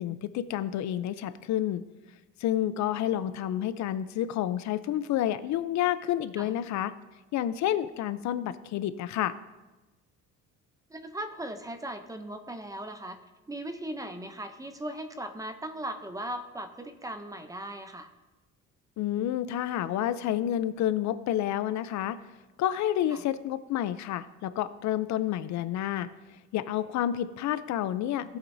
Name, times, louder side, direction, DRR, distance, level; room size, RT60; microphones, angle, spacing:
voice 1, 0.0-1.8 2.4-6.9 7.3-9.3 19.0-22.2 22.6-26.1 26.5-28.4, left 11 dB, 65° left, 13 dB, 0.5 m, -29 dB
voice 2, 10.9-13.2 13.5-18.1 23.1-23.2, right 1 dB, 10° right, 8 dB, 0.6 m, -38 dB
17.0 x 8.0 x 2.6 m, 1.1 s
cardioid pair, 145°, 31 cm